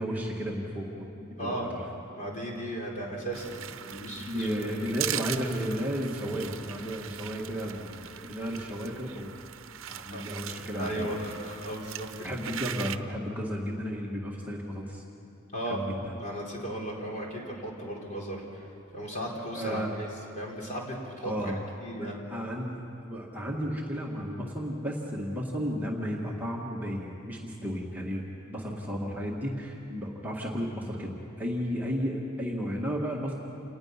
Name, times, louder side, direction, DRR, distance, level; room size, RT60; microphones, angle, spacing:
voice 1, 0.0-1.9 3.9-9.3 9.9-11.2 12.2-15.0 15.6-16.2 19.5-19.9 21.2-21.6 21.9-33.3, equal, 10° right, -3 dB, 1.9 m, -33 dB
voice 2, 1.4-1.7 2.1-4.7 10.1-10.2 10.8-12.3 15.5-15.8 16.2-20.1 20.3-21.5 21.8-22.2, right 1 dB, 40° left, -2 dB, 4.0 m, -36 dB
sound 1, 3.3-13.0, right 11 dB, 75° right, 0.7 m, -40 dB
28.0 x 19.5 x 5.8 m, 2.8 s
head